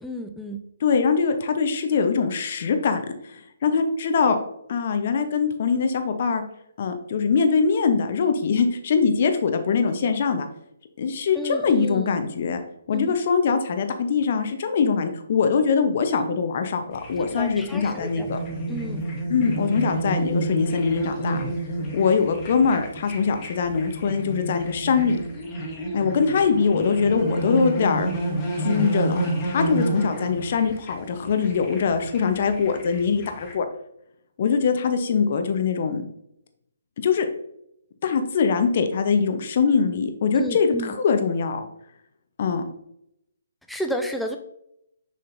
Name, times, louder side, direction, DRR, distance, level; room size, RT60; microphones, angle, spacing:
voice 1, 0.0-0.6 11.3-12.2 12.9-13.2 16.1-16.4 17.2-18.3 18.7-19.0 40.4-40.9 43.7-44.4, equal, ahead, 4 dB, 0.5 m, -32 dB
voice 2, 0.8-4.4 4.7-6.4 6.8-10.5 11.0-12.6 12.9-18.4 19.3-21.5 21.9-25.2 25.9-28.1 28.6-33.7 34.4-36.1 37.0-37.3 38.0-41.7 42.4-42.6, left 5 dB, 45° left, 7 dB, 0.8 m, -22 dB
sound 1, 16.9-33.5, right 2 dB, 25° left, 1.5 m, -30 dB
6.6 x 5.4 x 2.6 m, 0.76 s
figure-of-eight pair, 135°, 0 cm